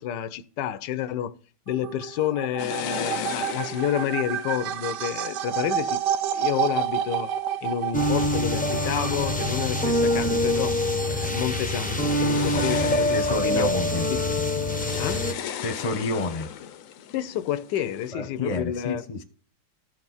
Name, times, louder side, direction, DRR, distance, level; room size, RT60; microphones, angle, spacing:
voice 1, 0.0-1.4 1.7-6.0 6.3-7.3 7.6-14.2 15.0-15.3 17.1-19.1, left 10 dB, 80° left, 1.3 m, -29 dB
sound 1, 1.7-13.0, right 9 dB, 80° right, 1.2 m, -31 dB
sound 2, 2.6-7.3 7.9-8.5 8.9-18.1, left 9 dB, 65° left, 0.9 m, -39 dB
sound 3, 7.9-15.3, left 1 dB, 10° left, 0.5 m, -25 dB
voice 2, 12.5-14.1 15.6-16.5 18.1-19.2, left 2 dB, 25° left, 0.8 m, -29 dB
14.0 x 4.8 x 4.0 m
omnidirectional pair, 1.9 m